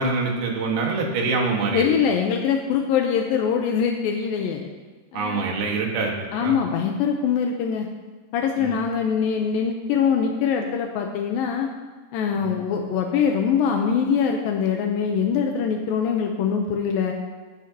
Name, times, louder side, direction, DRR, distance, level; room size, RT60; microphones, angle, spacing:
voice 1, 0.0-1.9 5.1-6.5 8.6-8.8 12.4-12.6, right 4 dB, 80° right, 0 dB, 3.5 m, -25 dB
voice 2, 1.7-4.7 5.1-5.4 6.3-7.9 8.3-11.7 12.1-17.1, left 7 dB, 80° left, 3 dB, 2.5 m, -23 dB
18.5 x 9.5 x 2.9 m, 1.4 s
omnidirectional pair, 4.2 m